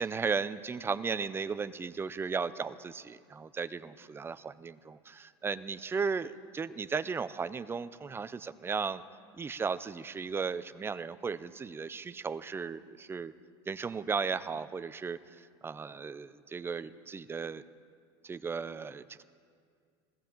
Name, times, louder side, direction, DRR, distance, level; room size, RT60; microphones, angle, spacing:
voice 1, 0.0-9.0 9.3-13.3 13.7-17.6 18.2-19.2, right 5 dB, 15° right, 13 dB, 0.5 m, -35 dB
20.0 x 16.5 x 3.8 m, 2.2 s
supercardioid pair, 105°, 13 cm